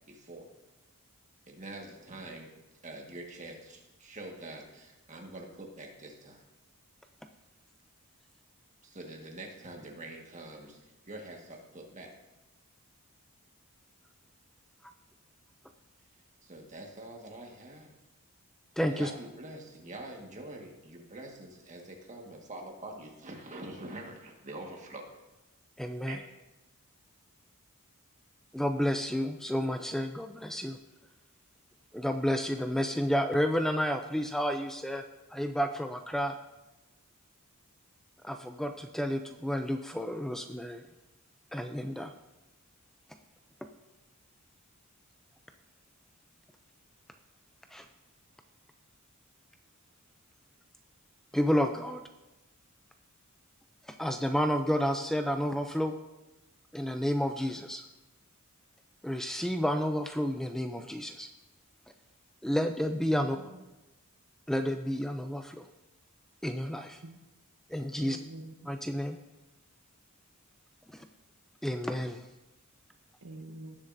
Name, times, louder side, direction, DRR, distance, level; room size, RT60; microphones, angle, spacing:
voice 1, 0.1-0.5 1.5-2.5 2.8-6.4 8.8-12.1 16.4-17.9 18.8-25.1 26.1-26.2, right 2 dB, 35° right, 1 dB, 1.6 m, -45 dB
voice 2, 18.8-19.1 25.8-26.2 28.5-30.8 31.9-35.0 35.3-36.3 38.2-40.8 41.5-42.1 47.7-47.9 51.3-52.0 53.9-55.9 56.7-57.8 59.0-61.3 62.4-63.4 64.5-65.7 66.4-67.0 67.7-68.2 68.7-69.2 70.9-71.1 71.6-72.2, equal, ahead, 6 dB, 0.3 m, -30 dB
voice 3, 63.0-63.6 67.0-67.2 68.0-68.7 73.2-73.8, right 2 dB, 80° right, 6 dB, 0.9 m, -46 dB
18.0 x 7.2 x 2.6 m, 1.0 s
head